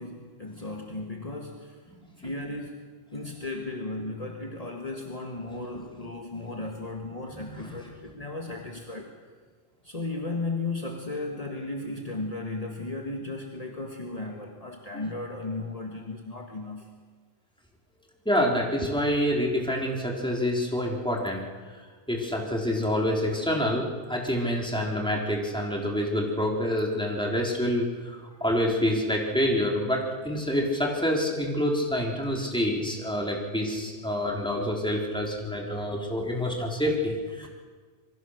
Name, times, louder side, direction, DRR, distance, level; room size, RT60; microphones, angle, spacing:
voice 1, 0.0-1.8 2.2-9.1 9.8-16.9 37.4-37.5, left 2 dB, 35° left, 1 dB, 1.9 m, -35 dB
voice 2, 7.5-7.8 14.9-15.0 18.3-21.5 22.1-37.5, equal, 5° left, -1 dB, 3.8 m, -27 dB
27.0 x 22.5 x 6.6 m, 1.5 s
omnidirectional pair, 1.0 m